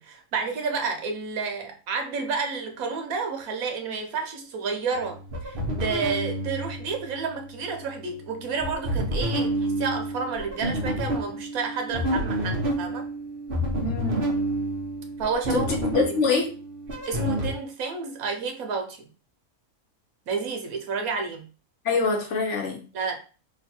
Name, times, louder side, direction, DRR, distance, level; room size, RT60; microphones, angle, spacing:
voice 1, 0.0-13.1 15.2-15.7 16.0-16.2 17.1-19.1 20.3-21.5 22.9-23.2, right 5 dB, 80° right, 4 dB, 1.2 m, -30 dB
sound 1, 4.9-17.5, right 1 dB, 45° right, 1.0 m, -29 dB
voice 2, 13.8-14.3 15.5-15.7 15.9-16.5 21.8-22.8, left 4 dB, 60° left, 1 dB, 1.1 m, -24 dB
3.1 x 2.4 x 4.3 m, 0.36 s
omnidirectional pair, 1.5 m